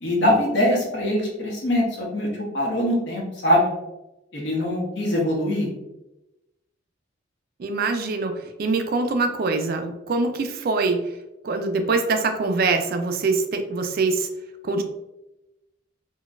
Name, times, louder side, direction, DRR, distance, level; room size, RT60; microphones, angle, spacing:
voice 1, 0.0-2.3 2.5-3.7 4.3-5.7, left 1 dB, 60° left, -2 dB, 1.0 m, -22 dB
voice 2, 7.6-8.3 8.6-11.0 11.4-14.3 14.6-14.8, right 3 dB, 50° right, 6 dB, 0.3 m, -23 dB
3.9 x 2.3 x 2.3 m, 0.94 s
head